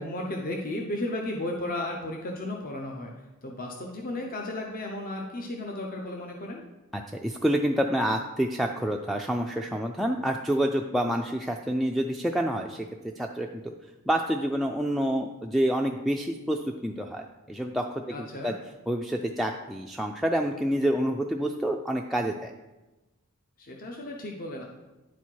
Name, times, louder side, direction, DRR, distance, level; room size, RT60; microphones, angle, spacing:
voice 1, 0.0-6.7 18.1-18.5 23.6-24.6, left 1 dB, 40° left, 0 dB, 0.8 m, -34 dB
voice 2, 6.9-12.9 13.2-13.7 14.1-18.2 18.4-18.5 18.9-22.5, equal, ahead, 0 dB, 0.3 m, -28 dB
10.0 x 4.2 x 4.6 m, 1.1 s
head